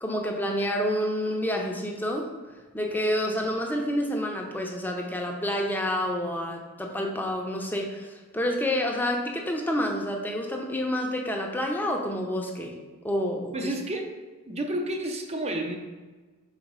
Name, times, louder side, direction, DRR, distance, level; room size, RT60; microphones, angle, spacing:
voice 1, 0.0-2.3 2.7-12.7 13.0-13.7, equal, 10° left, 1 dB, 0.7 m, -28 dB
voice 2, 13.5-14.2 14.5-15.8, right 1 dB, 30° right, 4 dB, 0.6 m, -30 dB
4.9 x 3.9 x 5.4 m, 1.3 s
head